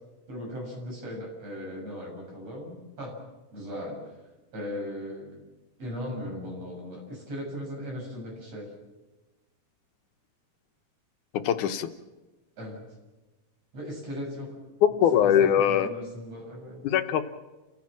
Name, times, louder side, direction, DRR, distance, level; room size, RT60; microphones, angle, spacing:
voice 1, 0.3-3.2 3.5-4.1 4.5-5.4 5.8-8.7 12.6-12.8 13.7-14.6 14.9-15.3 15.6-16.8, equal, 55° right, 0 dB, 8.2 m, -38 dB
voice 2, 11.4-11.9 14.8-15.9 16.8-17.3, left 9 dB, 80° left, 8 dB, 2.5 m, -22 dB
30.0 x 15.5 x 7.5 m, 1.2 s
omnidirectional pair, 3.5 m